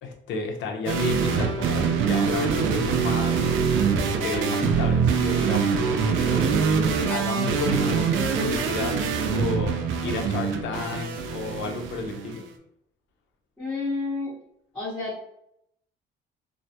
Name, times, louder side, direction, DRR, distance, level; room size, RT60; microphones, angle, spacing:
voice 1, 0.0-3.4 3.9-9.7 10.0-12.4, left 4 dB, 70° left, 3 dB, 0.6 m, -32 dB
sound 1, 0.9-12.4, right 6 dB, 90° right, 0.4 m, -24 dB
voice 2, 13.6-14.3 14.7-15.2, left 3 dB, 5° left, -12 dB, 0.9 m, -30 dB
2.2 x 2.1 x 2.8 m, 0.75 s
cardioid pair, 180°, 20 cm